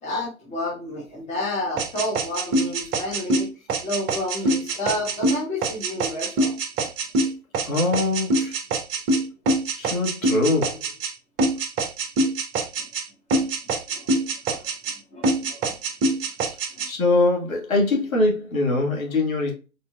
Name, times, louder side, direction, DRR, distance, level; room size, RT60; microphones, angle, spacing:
voice 1, 0.0-3.5 3.8-6.5 12.8-12.9 13.3-13.4 13.9-14.7 15.1-15.6 16.7-16.9, left 1 dB, 15° left, 1.3 m, -30 dB
sound 1, 1.8-11.1 11.4-13.0 13.3-15.0 15.2-16.9, right 2 dB, 25° right, 0.8 m, -24 dB
voice 2, 7.7-8.6 9.7-10.8 16.5-16.6 16.8-19.5, left 2 dB, 70° left, 1.7 m, -22 dB
4.2 x 3.8 x 2.3 m
figure-of-eight pair, 105°, 42 cm